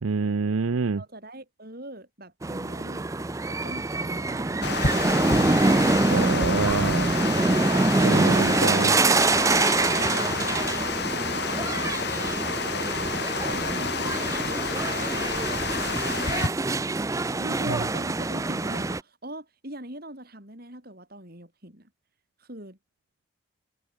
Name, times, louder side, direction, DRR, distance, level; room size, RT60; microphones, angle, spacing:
voice 1, 0.0-1.0 6.1-7.1 8.0-8.9 17.7-17.8, right 4 dB, 80° right, 0.6 m, -26 dB
voice 2, 1.0-4.8 7.2-7.4 8.1-8.7 9.9-10.4 11.1-11.9 13.4-15.4 15.7-16.5 17.4-21.9 22.4-22.8, right 1 dB, 45° right, 6.9 m, -42 dB
sound 1, 2.4-19.0, right 2 dB, 15° right, 0.4 m, -25 dB
Water, 4.6-16.5, left 4 dB, 50° left, 3.6 m, -30 dB
head